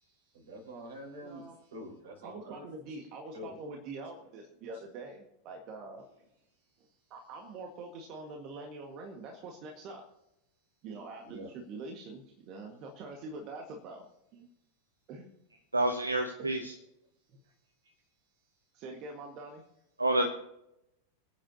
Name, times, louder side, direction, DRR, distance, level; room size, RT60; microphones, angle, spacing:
voice 1, 0.0-2.7 3.3-3.6 11.2-11.5 17.8-17.9, equal, 60° right, 2 dB, 4.7 m, -46 dB
voice 2, 1.2-1.6 2.2-6.1 7.1-10.0 10.8-14.1 14.3-14.5 15.1-15.3 16.4-16.5 17.3-17.4 18.7-19.6, right 3 dB, 40° right, 2 dB, 1.7 m, -44 dB
voice 3, 15.7-16.7 20.0-20.3, right 1 dB, 80° right, 5 dB, 0.9 m, -28 dB
26.5 x 9.1 x 2.8 m, 0.83 s
figure-of-eight pair, 90°, 0 cm